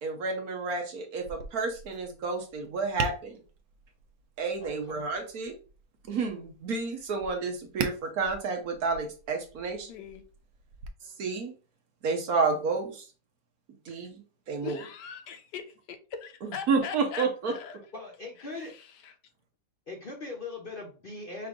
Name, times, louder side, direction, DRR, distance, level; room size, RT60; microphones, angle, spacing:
voice 1, 0.0-3.4 4.4-5.5 6.1-9.9 11.2-11.5 12.0-13.1 13.9-14.8 16.4-17.5, right 4 dB, 60° right, 1.2 m, -30 dB
Tap, 1.2-10.9, right 5 dB, 85° right, 1.3 m, -42 dB
voice 2, 4.6-5.1 17.9-18.7 19.9-21.5, left 3 dB, 45° left, 0.7 m, -40 dB
voice 3, 9.8-10.2 14.6-17.8 18.6-19.1, left 7 dB, 75° left, 1.2 m, -41 dB
5.7 x 2.5 x 3.6 m
omnidirectional pair, 1.9 m